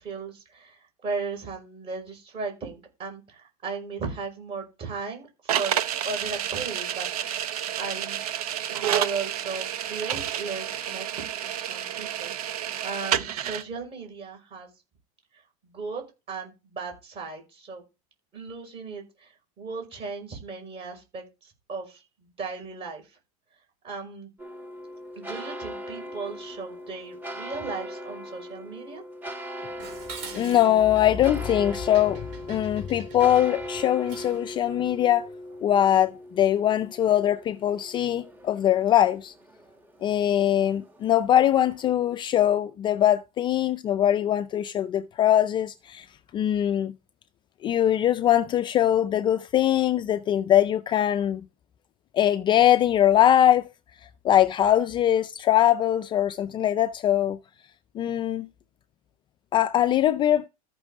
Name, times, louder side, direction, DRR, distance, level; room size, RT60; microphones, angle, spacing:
voice 1, 0.0-7.5 7.8-8.2 8.7-12.3 12.8-14.7 15.6-16.0 16.3-17.8 18.3-23.1 23.8-24.3 25.2-29.0, right 4 dB, 30° right, 5.4 m, -36 dB
sound 1, 5.5-13.6, right 10 dB, 90° right, 0.8 m, -30 dB
sound 2, 24.4-42.0, equal, 10° right, 1.5 m, -40 dB
Dishes pots and pans, 29.8-34.5, right 5 dB, 60° right, 4.1 m, -45 dB
voice 2, 30.3-35.3 35.6-39.3 40.0-46.1 46.3-46.9 47.6-51.4 52.1-53.7 54.2-57.4 58.0-58.5 59.5-60.5, left 11 dB, 25° left, 0.4 m, -22 dB
14.0 x 6.0 x 3.6 m
supercardioid pair, 135°, 19 cm